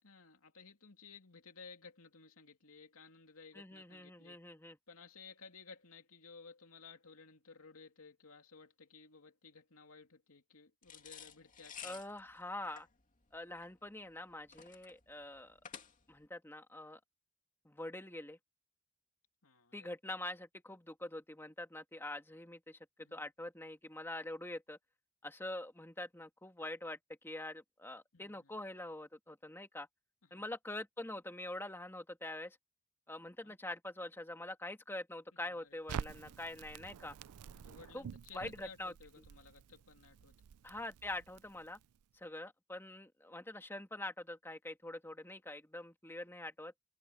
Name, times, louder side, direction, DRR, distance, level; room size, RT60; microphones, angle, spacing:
voice 1, 0.0-4.4 4.9-12.0 19.4-19.9 23.0-23.3 28.1-28.5 30.2-30.5 33.4-33.6 35.3-35.8 36.2-36.3 37.5-40.3, left 4 dB, 70° left, 2.8 m, -57 dB
voice 2, 3.5-4.8 11.8-12.9 13.3-15.6 16.1-17.0 17.6-18.4 19.7-24.8 25.2-27.0 27.2-29.9 30.3-32.6 33.1-37.2 37.9-38.1 38.3-38.9 40.6-41.8 42.2-46.7, left 1 dB, 10° left, 2.1 m, -45 dB
sound 1, 10.8-16.3, left 8 dB, 35° left, 2.7 m, -52 dB
Crackle, 35.9-42.0, right 7 dB, 85° right, 0.4 m, -48 dB
head